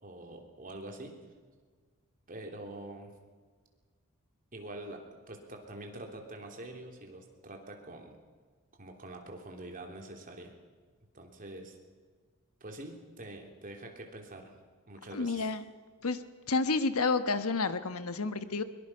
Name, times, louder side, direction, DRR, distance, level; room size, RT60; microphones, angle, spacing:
voice 1, 0.0-1.2 2.3-3.1 4.5-8.2 8.8-10.5 11.1-11.8 12.6-14.5 14.9-15.5, right 1 dB, 40° right, 2 dB, 3.4 m, -45 dB
voice 2, 15.1-15.6 16.0-16.2 16.5-18.6, left 3 dB, 85° left, 11 dB, 1.3 m, -30 dB
23.5 x 22.0 x 5.8 m, 1.5 s
head